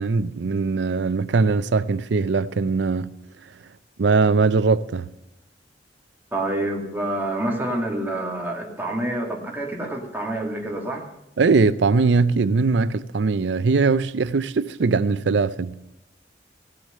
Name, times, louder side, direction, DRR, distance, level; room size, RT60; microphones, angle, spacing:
voice 1, 0.0-3.1 4.0-5.1 11.4-15.8, right 4 dB, 70° right, 0.5 m, -21 dB
voice 2, 6.3-11.0, right 1 dB, 10° right, 2.3 m, -27 dB
17.0 x 7.8 x 6.5 m
head